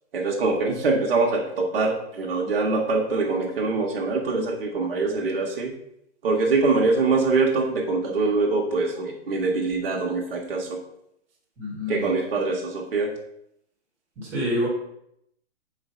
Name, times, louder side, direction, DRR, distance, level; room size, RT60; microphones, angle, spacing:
voice 1, 0.1-5.7 6.2-10.8 11.9-13.1, right 3 dB, 55° right, -1 dB, 1.1 m, -24 dB
voice 2, 11.6-12.1 14.2-14.7, left 1 dB, 5° right, -9 dB, 1.2 m, -27 dB
4.3 x 4.1 x 5.3 m, 0.76 s
hypercardioid pair, 180°, 33 cm